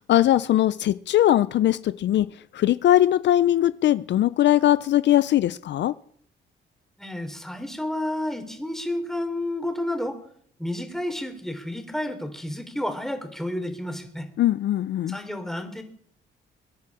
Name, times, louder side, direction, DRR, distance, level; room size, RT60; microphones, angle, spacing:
voice 1, 0.0-5.9 14.4-15.2, left 12 dB, 65° left, 0.5 m, -20 dB
voice 2, 7.0-10.2 10.6-14.3 15.1-15.8, left 1 dB, ahead, 3.5 m, -31 dB
22.5 x 10.5 x 4.9 m
cardioid pair, 90°, 20 cm